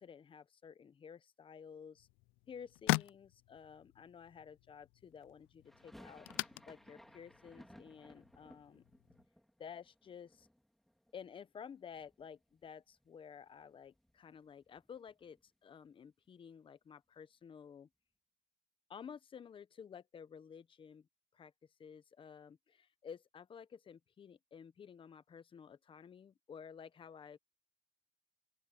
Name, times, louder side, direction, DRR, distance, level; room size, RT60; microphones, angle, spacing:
voice 1, 0.0-2.1 2.5-8.8 9.6-10.5 11.1-17.9 18.9-21.1 21.3-21.5 21.8-27.4, left 7 dB, 25° left, 0.8 m, -53 dB
sound 1, 1.9-9.2, left 25 dB, 85° left, 0.5 m, -43 dB
sound 2, 5.6-11.6 11.9-12.7 13.0-13.1 13.3-15.5, equal, ahead, 1.9 m, -61 dB
open air
cardioid pair, 145°, 20 cm